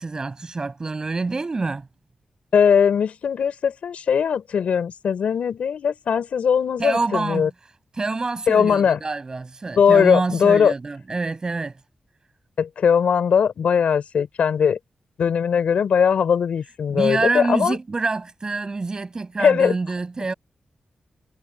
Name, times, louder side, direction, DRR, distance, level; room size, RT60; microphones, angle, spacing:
voice 1, 0.0-1.9 6.8-7.5 7.9-11.8 16.9-20.3, right 3 dB, 35° right, 7.7 m, -26 dB
voice 2, 2.5-7.5 8.5-9.0 9.8-10.7 12.6-14.8 15.2-17.8 19.4-19.7, left 7 dB, 85° left, 4.2 m, -19 dB
wide cardioid pair, 105°, 2 cm